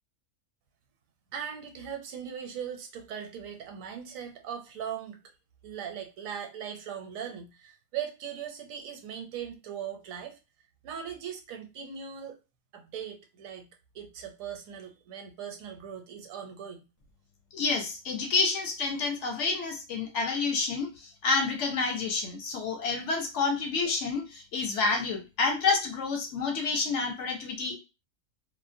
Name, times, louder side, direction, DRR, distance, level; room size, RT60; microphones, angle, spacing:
voice 1, 1.3-5.2 5.6-10.4 10.8-12.4 12.7-16.9, right 8 dB, 80° right, 4 dB, 1.0 m, -39 dB
voice 2, 17.5-27.7, left 4 dB, 65° left, 3 dB, 0.9 m, -29 dB
2.4 x 2.1 x 2.5 m, 0.29 s
omnidirectional pair, 1.4 m